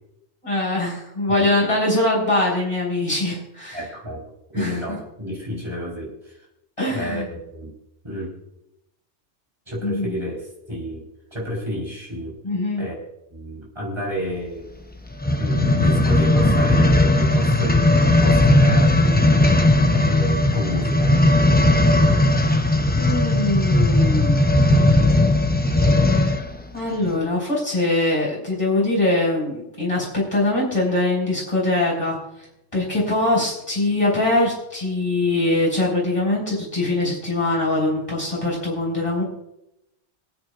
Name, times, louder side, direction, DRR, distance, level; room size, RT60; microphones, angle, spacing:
voice 1, 0.4-3.8 4.5-5.0 6.8-7.3 9.8-10.2 12.4-12.9 23.0-24.4 25.0-25.1 26.1-26.4 26.7-32.2 32.7-39.2, left 2 dB, 25° left, -4 dB, 5.4 m, -22 dB
voice 2, 3.7-6.3 6.9-7.7 8.0-8.3 9.7-11.1 11.3-12.3 12.8-13.0 13.3-14.7 15.4-19.5 19.9-21.1, equal, 25° right, -2 dB, 4.0 m, -31 dB
sound 1, 15.1-26.5 27.1-27.2, left 1 dB, 10° left, 0.6 m, -17 dB
27.0 x 9.1 x 2.5 m, 0.84 s
omnidirectional pair, 1.2 m